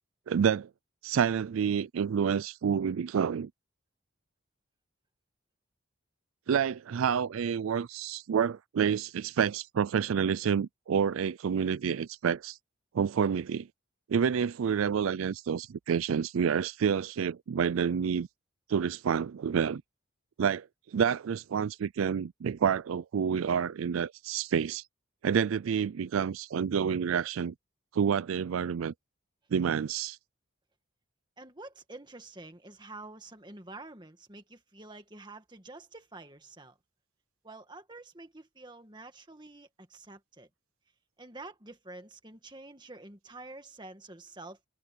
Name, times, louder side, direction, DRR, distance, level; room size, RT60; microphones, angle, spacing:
voice 1, 0.3-0.7 1.0-3.5 6.5-12.6 12.9-13.7 14.1-18.3 18.7-19.8 20.4-24.8 25.2-27.5 27.9-28.9 29.5-30.2, right 7 dB, 80° right, 0.4 m, -28 dB
voice 2, 31.4-36.8 37.4-40.5 41.2-44.7, right 2 dB, 20° right, 1.9 m, -48 dB
head